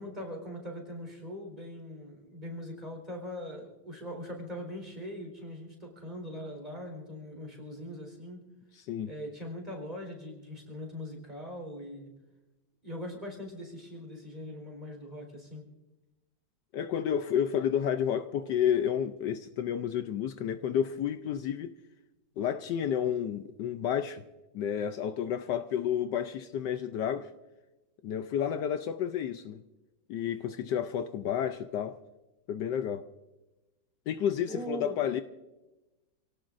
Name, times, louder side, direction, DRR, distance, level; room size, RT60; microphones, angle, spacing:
voice 1, 0.0-8.5 9.1-12.1 12.8-15.6 34.4-35.0, equal, 25° right, 4.2 m, -41 dB
voice 2, 16.7-21.7 22.4-24.2 24.5-27.3 28.0-29.6 30.1-31.9 32.5-33.1 34.1-35.2, left 9 dB, 75° left, 1.2 m, -30 dB
28.5 x 17.5 x 2.6 m
omnidirectional pair, 2.0 m